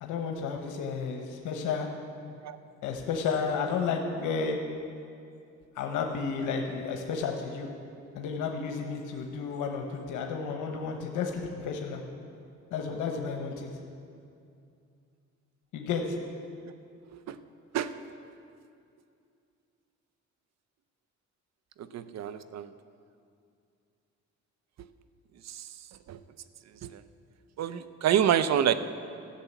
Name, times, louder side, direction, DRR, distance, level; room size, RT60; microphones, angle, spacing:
voice 1, 0.0-1.9 2.8-4.6 5.8-7.7 8.1-12.0 12.7-13.7 15.7-16.2, left 5 dB, 85° left, 3 dB, 1.1 m, -32 dB
voice 2, 21.9-22.7 25.5-25.6 26.1-26.2 26.8-27.0 27.6-28.7, right 9 dB, 60° right, 12 dB, 0.7 m, -27 dB
14.0 x 6.9 x 8.2 m, 2.5 s
cardioid pair, 90°, 30 cm